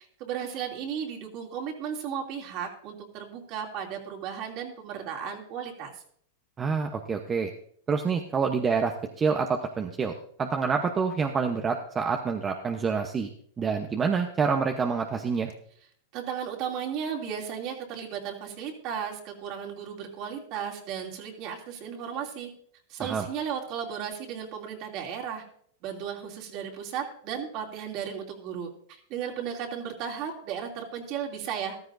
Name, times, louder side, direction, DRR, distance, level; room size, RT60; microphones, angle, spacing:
voice 1, 0.2-6.0 16.1-22.5 22.9-25.4 25.8-28.7 29.1-31.9, right 8 dB, 50° right, 1 dB, 2.7 m, -35 dB
voice 2, 6.6-7.5 7.9-10.1 10.4-13.3 13.6-15.5 23.0-23.2, right 5 dB, 20° right, 4 dB, 0.9 m, -27 dB
14.5 x 13.0 x 2.6 m, 0.62 s
hypercardioid pair, 120°, 0 cm